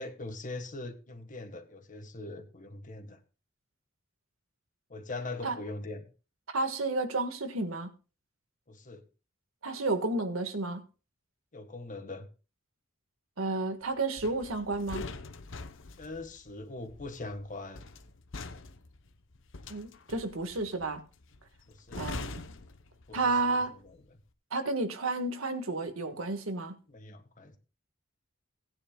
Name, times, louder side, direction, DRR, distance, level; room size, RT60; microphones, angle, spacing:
voice 1, 0.0-3.2 4.9-6.0 8.7-9.0 11.5-12.3 16.0-17.9 21.7-22.1 23.1-23.6 23.9-24.0 26.9-27.6, left 2 dB, 40° left, 7 dB, 1.6 m, -41 dB
voice 2, 6.5-7.9 9.6-10.8 13.4-15.1 19.7-21.0 22.0-22.4 23.1-23.7 24.5-26.8, right 3 dB, 90° right, 7 dB, 1.7 m, -31 dB
sound 1, 14.2-23.5 23.8-24.1, left 3 dB, 65° left, 0.9 m, -44 dB
19.0 x 9.7 x 2.3 m, 0.34 s
head